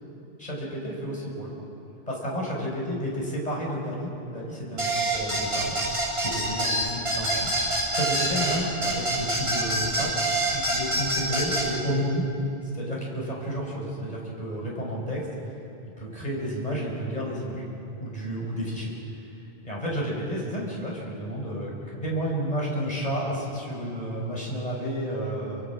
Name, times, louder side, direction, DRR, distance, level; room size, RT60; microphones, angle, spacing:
voice 1, 0.4-1.5 2.1-5.7 6.3-12.2 12.7-15.3 16.0-17.6 18.0-18.9 19.6-21.7 22.0-25.6, equal, 35° left, -4 dB, 6.2 m, -31 dB
sound 1, 4.8-11.7, right 1 dB, 70° right, 8.0 m, -26 dB
28.5 x 26.5 x 6.3 m, 2.7 s
omnidirectional pair, 1.1 m